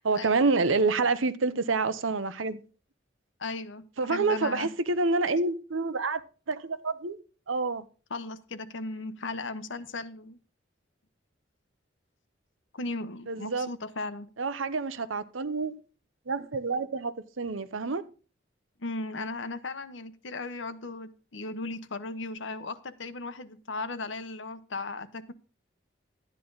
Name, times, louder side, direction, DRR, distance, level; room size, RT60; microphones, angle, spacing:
voice 1, 0.0-2.6 4.0-6.2 6.5-7.2 7.5-7.8 13.3-13.7 14.4-15.8 16.3-18.1, right 3 dB, 90° right, 0.9 m, -28 dB
voice 2, 3.4-3.8 4.1-4.7 8.1-10.4 12.7-14.3 18.8-25.3, left 3 dB, 75° left, 1.0 m, -36 dB
12.5 x 10.0 x 4.0 m
head